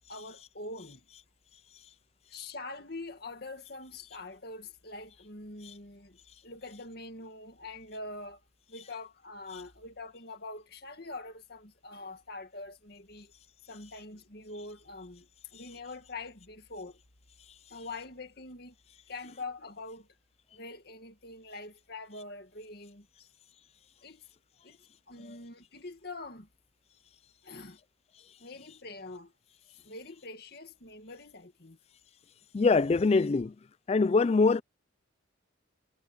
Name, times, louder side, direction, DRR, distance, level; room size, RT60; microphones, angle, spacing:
voice 1, 0.1-1.0 2.3-6.2 6.4-8.4 8.7-13.3 13.7-17.0 17.7-18.8 19.1-20.1 20.5-23.3 24.0-24.2 24.6-24.8 25.1-26.5 27.4-27.8 28.4-29.3 29.7-31.8, left 2 dB, 50° left, 2.0 m, -44 dB
voice 2, 32.5-33.5 33.9-34.6, left 4 dB, 30° left, 0.3 m, -23 dB
head